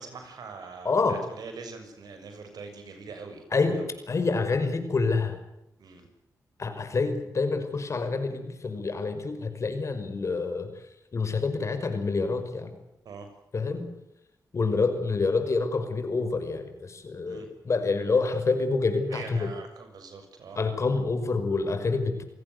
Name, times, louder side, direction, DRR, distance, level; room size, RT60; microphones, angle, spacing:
voice 1, 0.0-3.4 3.7-3.9 5.8-6.1 13.0-13.3 17.3-17.5 19.1-20.6, right 4 dB, 75° right, 6 dB, 6.7 m, -43 dB
voice 2, 0.9-1.2 3.5-5.4 6.6-10.7 11.1-12.7 13.5-13.8 14.5-19.5 20.6-22.2, left 4 dB, 45° left, 8 dB, 5.5 m, -27 dB
29.5 x 17.5 x 8.2 m, 0.85 s
cardioid pair, 80°, 7 cm